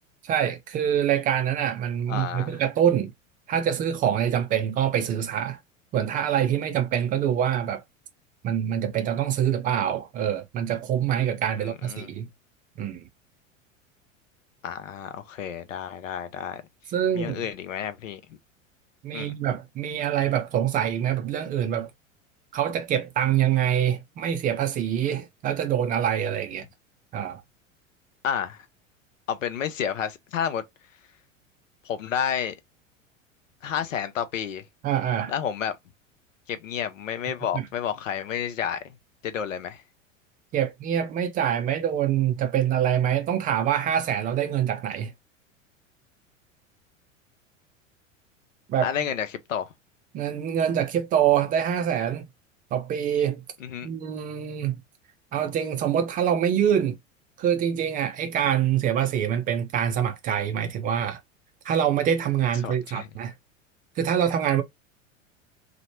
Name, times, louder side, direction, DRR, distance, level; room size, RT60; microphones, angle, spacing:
voice 1, 0.2-3.1 3.5-5.6 5.9-7.8 8.4-12.3 12.8-13.0 16.9-17.5 19.0-21.9 22.5-26.7 27.1-27.4 34.8-35.3 37.5-37.6 40.5-45.1 48.7-48.9 50.1-52.2 52.7-53.4 53.8-54.8 55.3-57.0 57.4-61.2 61.6-63.3 64.0-64.6, right 9 dB, 20° right, 0.4 m, -25 dB
voice 2, 2.1-2.6 11.6-12.1 14.6-16.6 17.1-18.2 19.1-19.3 28.2-28.7 29.3-30.6 31.8-32.5 33.6-34.6 35.3-35.8 36.5-38.8 39.2-39.8 48.8-49.7 53.6-53.9 62.6-63.1, left 8 dB, 75° left, 0.6 m, -30 dB
2.9 x 2.1 x 2.9 m
figure-of-eight pair, 85°, 39 cm